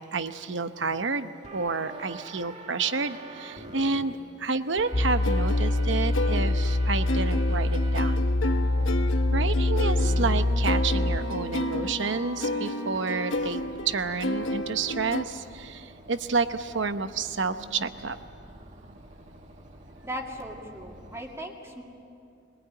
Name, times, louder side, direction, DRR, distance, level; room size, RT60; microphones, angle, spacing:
voice 1, 0.1-8.1 9.3-18.2, right 4 dB, 65° right, 10 dB, 0.9 m, -30 dB
sound 1, 1.4-4.0 4.8-8.2 8.8-8.9 10.0-21.2, right 1 dB, 35° right, 1.8 m, -44 dB
sound 2, 4.9-11.2, left 2 dB, 50° left, 1.1 m, -25 dB
sound 3, 5.2-15.2, left 1 dB, 70° left, 1.1 m, -32 dB
voice 2, 20.0-21.8, equal, 15° right, 0 dB, 2.2 m, -38 dB
24.5 x 19.5 x 8.9 m, 2.6 s
head